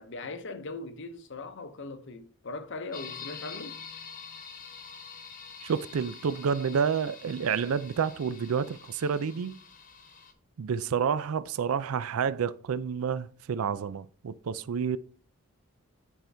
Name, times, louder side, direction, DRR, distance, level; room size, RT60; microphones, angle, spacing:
voice 1, 0.0-3.8, left 3 dB, 55° left, 0.8 m, -40 dB
sound 1, 2.9-10.3, left 6 dB, 35° left, 1.1 m, -46 dB
voice 2, 5.6-9.6 10.6-15.0, right 6 dB, 70° right, 0.4 m, -29 dB
10.0 x 4.5 x 3.4 m
head